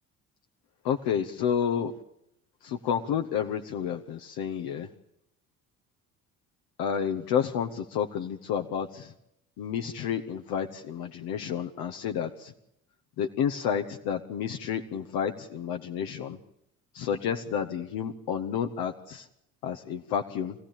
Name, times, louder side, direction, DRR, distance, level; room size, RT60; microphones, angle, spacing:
voice 1, 0.8-1.9 2.6-4.9 6.8-9.1 9.6-12.5 13.2-16.4 16.9-19.3 19.6-20.5, left 8 dB, 60° left, 5 dB, 1.3 m, -30 dB
25.0 x 16.0 x 8.9 m, 0.82 s
figure-of-eight pair, 55°, 42 cm